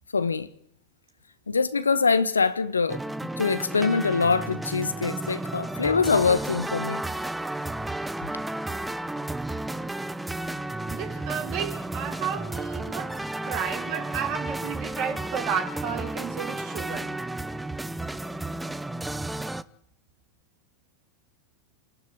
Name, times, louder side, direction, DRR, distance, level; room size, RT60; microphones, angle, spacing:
voice 1, 0.1-0.5 1.5-3.0 3.4-7.0, left 4 dB, 85° left, 1.1 m, -24 dB
sound 1, 2.9-19.6, right 2 dB, 5° right, 0.8 m, -33 dB
voice 2, 10.9-13.1 13.5-17.1, right 8 dB, 45° right, 5.3 m, -32 dB
28.0 x 12.0 x 9.7 m
figure-of-eight pair, 90°, 0 cm